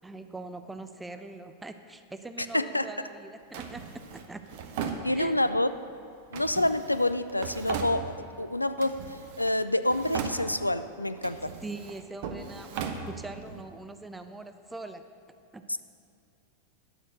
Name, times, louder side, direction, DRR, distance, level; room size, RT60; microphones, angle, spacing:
voice 1, 0.0-4.5 5.1-5.4 11.6-15.0 15.5-15.8, right 2 dB, 10° right, 9 dB, 0.5 m, -42 dB
voice 2, 2.5-2.9 5.0-5.7 6.3-11.5, left 1 dB, 85° left, 12 dB, 0.3 m, -27 dB
Drawer open or close, 3.5-5.6 6.3-8.4 8.8-9.6 9.8-10.8 11.2-13.6, right 6 dB, 50° right, 0.8 m, -38 dB
11.0 x 6.3 x 6.3 m, 2.4 s
figure-of-eight pair, 90°, 0 cm